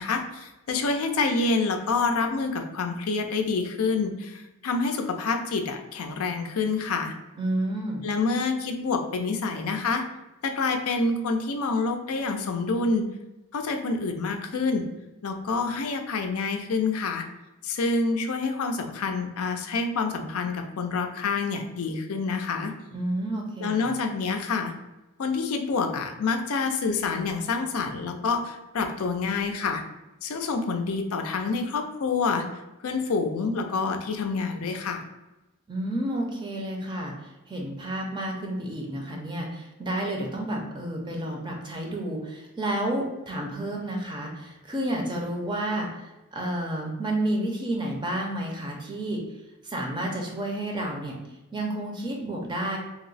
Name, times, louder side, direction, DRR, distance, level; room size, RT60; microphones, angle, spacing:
voice 1, 0.0-7.1 8.0-10.0 10.4-13.0 13.5-14.9 15.2-17.2 17.6-22.7 23.6-24.7 25.2-29.8 30.2-32.5 32.8-35.0, left 4 dB, 80° left, 5 dB, 0.5 m, -27 dB
voice 2, 7.4-8.0 22.9-23.9 35.7-49.2 49.6-51.2 51.5-52.8, right 1 dB, 20° right, 0 dB, 0.5 m, -30 dB
2.9 x 2.0 x 3.9 m, 1.0 s
head